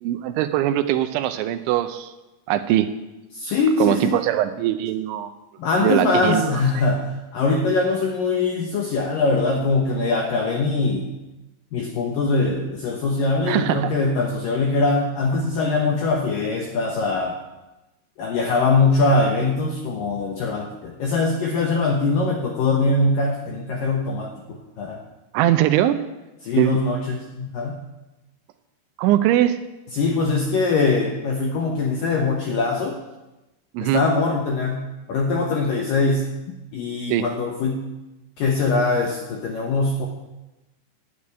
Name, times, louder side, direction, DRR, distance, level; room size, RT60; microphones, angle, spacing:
voice 1, 0.0-2.1 2.5-2.9 3.8-5.3 5.8-6.5 13.5-13.9 25.3-26.0 26.6-26.8 29.0-29.6 33.7-34.0 37.1-37.3, right 12 dB, 80° right, 10 dB, 3.0 m, -21 dB
voice 2, 3.3-4.2 5.6-11.1 11.7-17.4 18.2-25.0 26.4-27.8 29.9-33.0 33.8-34.8 35.1-36.2 36.7-37.8 38.4-40.1, left 3 dB, 75° left, 1 dB, 2.1 m, -22 dB
11.0 x 8.9 x 9.7 m, 1.0 s
omnidirectional pair, 5.6 m